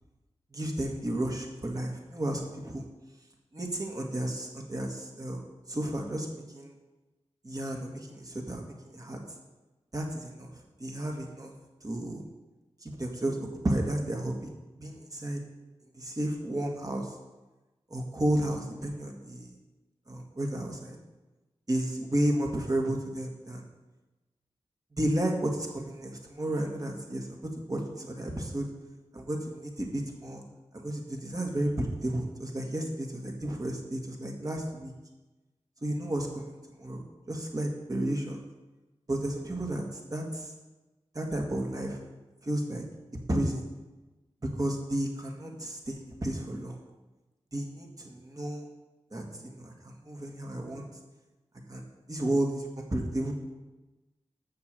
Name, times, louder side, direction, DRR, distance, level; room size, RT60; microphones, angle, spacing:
voice 1, 0.5-2.8 3.5-5.4 5.7-6.7 7.4-9.2 9.9-10.5 10.8-11.5 11.8-12.2 12.8-13.4 13.6-14.5 14.8-15.4 16.0-17.1 17.9-19.5 20.1-21.0 21.7-23.6 25.0-28.7 29.1-30.4 30.7-34.9 35.8-38.4 39.1-39.8 40.1-40.5 41.2-42.0 42.4-42.8 43.3-43.6 44.5-46.8 47.5-48.6 49.1-49.7 50.1-50.8 51.7-51.8 52.1-52.6 52.9-53.3, right 1 dB, 35° right, 1 dB, 1.8 m, -32 dB
6.9 x 6.6 x 6.8 m, 1.1 s
wide cardioid pair, 60°, 11 cm